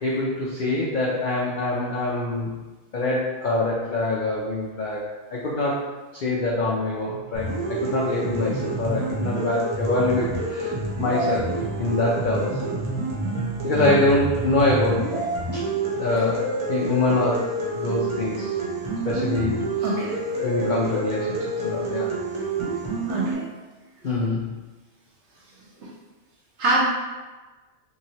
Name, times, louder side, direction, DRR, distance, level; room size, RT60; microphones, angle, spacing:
voice 1, 0.0-2.5 2.9-5.8 6.2-10.7 11.0-11.5 11.8-12.5 13.6-15.1 15.5-15.6 15.9-18.5 19.1-19.6 20.4-22.1 24.0-24.5, left 2 dB, 75° left, -4 dB, 0.4 m, -24 dB
sound 1, 7.3-23.3, right 2 dB, 40° right, 0.4 m, -28 dB
voice 2, 19.8-20.1 23.1-23.4 26.6-26.8, right 2 dB, 65° right, -4 dB, 1.0 m, -24 dB
2.9 x 2.7 x 2.7 m, 1.2 s
omnidirectional pair, 1.4 m